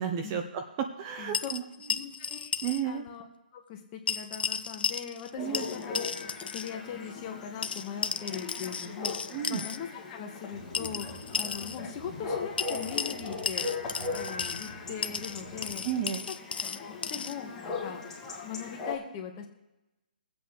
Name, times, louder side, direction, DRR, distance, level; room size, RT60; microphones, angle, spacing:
voice 1, 0.0-1.6 2.6-3.0 5.4-5.6 9.3-9.6 15.8-16.2, right 9 dB, 25° right, 6 dB, 0.7 m, -32 dB
voice 2, 1.2-1.5 1.9-2.5 2.8-3.2 3.5-6.0 6.5-11.1 11.4-13.7 14.1-15.8 16.7-18.0 18.4-19.5, left 8 dB, 25° left, 2 dB, 1.5 m, -40 dB
sound 1, 1.3-2.8 3.1-3.2 4.1-5.3 5.5-6.7 7.6-9.8 10.7-11.8 12.6-14.7 15.0-17.4, left 6 dB, 80° left, 0.7 m, -34 dB
Chatter / Bark / Livestock farm animals working animals, 5.4-19.0, left 4 dB, 10° left, 2.0 m, -39 dB
sound 2, 10.5-16.1, right 2 dB, 55° right, 3.2 m, -48 dB
22.0 x 8.0 x 3.3 m, 0.96 s
hypercardioid pair, 160°, 5 cm